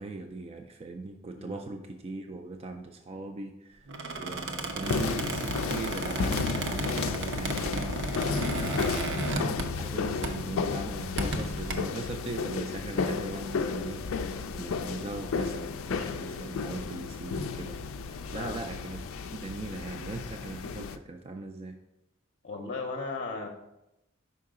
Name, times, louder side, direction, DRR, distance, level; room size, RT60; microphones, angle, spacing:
voice 1, 0.0-21.8, right 3 dB, 30° right, 4 dB, 0.3 m, -40 dB
Squeak, 3.9-9.9 10.2-10.5 11.0-11.7, right 2 dB, 65° right, 0.7 m, -34 dB
sound 1, 4.8-21.0, left 5 dB, 85° left, 0.4 m, -33 dB
voice 2, 8.7-9.0 18.3-18.6 22.4-23.5, left 3 dB, 45° left, 2 dB, 0.6 m, -36 dB
5.6 x 4.7 x 3.6 m, 0.89 s
head